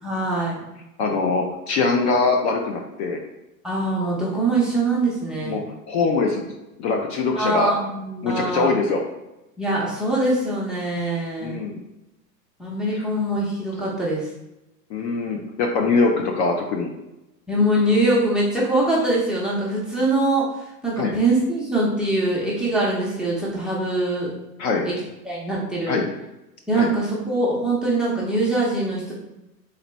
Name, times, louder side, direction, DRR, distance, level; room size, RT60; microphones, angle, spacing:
voice 1, 0.0-0.6 3.6-5.6 7.4-8.7 9.6-11.6 12.6-14.3 17.5-20.5 20.8-24.3 24.9-25.0 25.2-26.0 26.7-29.1, right 2 dB, ahead, -5 dB, 0.7 m, -23 dB
voice 2, 1.0-3.2 5.4-5.6 5.9-6.4 6.8-7.7 8.2-9.0 11.4-11.8 14.9-16.9 21.0-21.1 24.6-24.9 25.9-26.1 26.7-26.9, left 4 dB, 45° left, 2 dB, 0.6 m, -22 dB
3.9 x 2.9 x 3.3 m, 0.95 s
hypercardioid pair, 115°, 50 cm